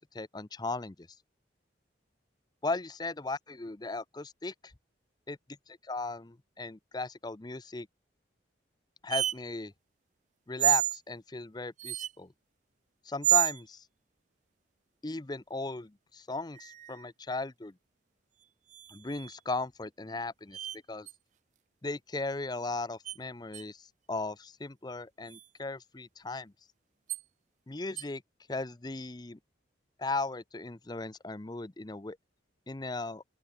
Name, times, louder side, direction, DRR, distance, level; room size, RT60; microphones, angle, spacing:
voice 1, 0.1-1.1 2.6-4.7 5.3-5.4 5.8-7.9 9.0-9.7 10.5-12.3 13.0-13.8 15.0-17.7 18.9-20.6 20.9-21.1 21.8-26.5 27.7-28.2 28.5-29.4 30.0-32.2 32.7-33.2, left 3 dB, 20° left, 0.6 m, -37 dB
sound 1, 9.1-9.4 10.6-11.0 11.8-12.1 13.2-13.6 16.5-17.1 18.7-19.4 20.5-20.8 21.1-21.2 23.0-23.2 23.5-23.6 25.3-25.5 27.1-27.2 28.0-28.1, right 13 dB, 40° right, 0.4 m, -29 dB
open air
head